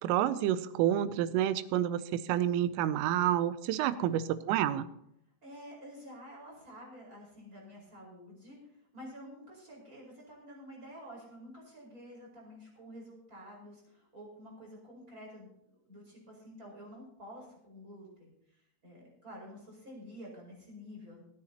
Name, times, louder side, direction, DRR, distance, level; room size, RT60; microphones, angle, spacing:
voice 1, 0.0-4.9, right 11 dB, 85° right, 13 dB, 3.2 m, -29 dB
voice 2, 3.8-4.2 5.4-21.2, equal, 15° right, -2 dB, 4.6 m, -50 dB
26.0 x 9.8 x 2.9 m, 0.77 s
omnidirectional pair, 5.8 m